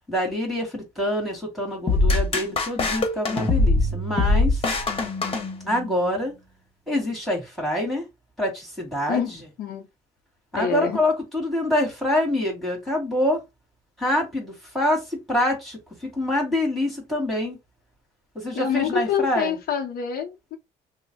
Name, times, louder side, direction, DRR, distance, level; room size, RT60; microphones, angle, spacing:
voice 1, 0.1-4.6 5.6-6.3 6.9-8.0 8.4-9.4 10.5-13.4 14.0-17.6 18.4-19.6, left 1 dB, ahead, 1.9 m, -26 dB
sound 1, 1.9-6.0, left 2 dB, 35° left, 1.1 m, -22 dB
voice 2, 10.5-11.0 18.5-20.6, left 8 dB, 65° left, 0.7 m, -26 dB
3.1 x 2.0 x 4.1 m
cardioid pair, 110°, 17 cm